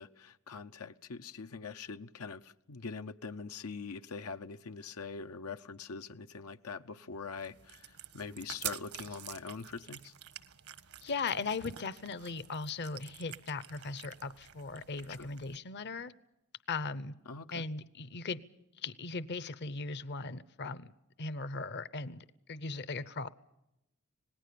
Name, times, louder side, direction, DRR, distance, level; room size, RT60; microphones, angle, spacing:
voice 1, 0.0-10.1 15.1-15.3 17.3-17.7, left 5 dB, 85° left, 9 dB, 0.8 m, -43 dB
sound 1, 5.7-5.8 6.1-6.2 6.8-6.9 8.4-10.5 10.8-11.0 11.3-11.4 12.8-12.9, right 13 dB, 50° right, 0.7 m, -43 dB
Cat, 7.4-15.6, right 8 dB, 75° right, 1.3 m, -52 dB
voice 2, 11.0-16.1 16.7-17.1 17.5-18.4 18.8-20.9 21.2-23.3, left 4 dB, 50° left, 16 dB, 0.8 m, -38 dB
26.0 x 19.5 x 6.8 m, 0.89 s
head